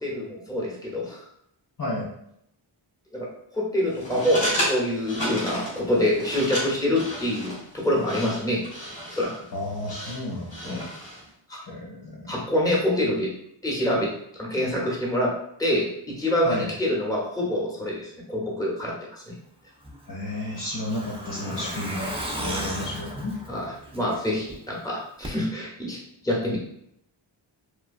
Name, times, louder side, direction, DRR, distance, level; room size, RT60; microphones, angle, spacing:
voice 1, 0.0-1.2 3.1-8.6 9.1-9.5 10.6-10.8 11.5-11.6 12.3-13.3 13.6-14.1 14.4-15.3 15.6-19.3 21.4-21.7 22.5-22.6 23.5-26.0 26.2-26.6, left 1 dB, 5° left, -4 dB, 0.9 m, -26 dB
sound 1, 3.9-11.3, equal, 90° left, 1.4 m, -33 dB
voice 2, 9.5-10.8 11.6-12.5 16.4-16.7 20.1-23.4, left 1 dB, 45° left, -4 dB, 0.6 m, -32 dB
Truck, 19.8-24.5 24.8-24.9 25.2-25.3, equal, 10° right, 0.4 m, -35 dB
3.0 x 2.2 x 2.4 m, 0.72 s
wide cardioid pair, 60°, 48 cm